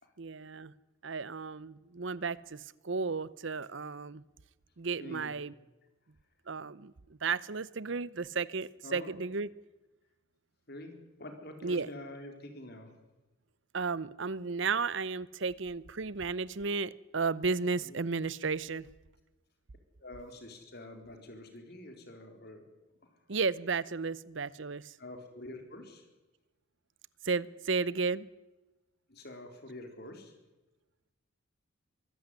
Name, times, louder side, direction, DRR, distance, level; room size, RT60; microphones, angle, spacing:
voice 1, 0.2-0.7 1.0-4.2 4.8-5.5 6.5-6.9 7.2-9.5 11.6-11.9 13.7-18.9 23.3-24.9 27.2-28.3, right 4 dB, 60° right, 19 dB, 0.8 m, -33 dB
voice 2, 5.0-5.3 8.8-9.1 10.7-10.9 11.2-12.9 17.8-18.0 20.0-22.7 23.0-23.2 25.0-26.1 29.1-30.3, left 1 dB, 50° left, 5 dB, 4.0 m, -47 dB
24.0 x 14.0 x 9.9 m, 1.1 s
head